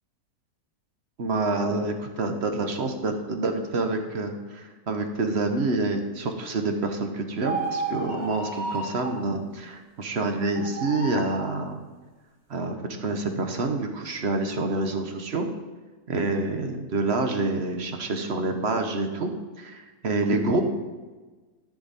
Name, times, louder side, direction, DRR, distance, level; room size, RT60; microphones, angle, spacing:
voice 1, 1.2-11.8 12.5-15.5 16.1-19.3 19.6-20.6, right 3 dB, 50° right, 5 dB, 1.0 m, -27 dB
sound 1, 7.4-9.2 10.5-11.5, right 3 dB, 10° right, 1.6 m, -32 dB
13.5 x 6.2 x 4.1 m, 1.3 s
omnidirectional pair, 1.7 m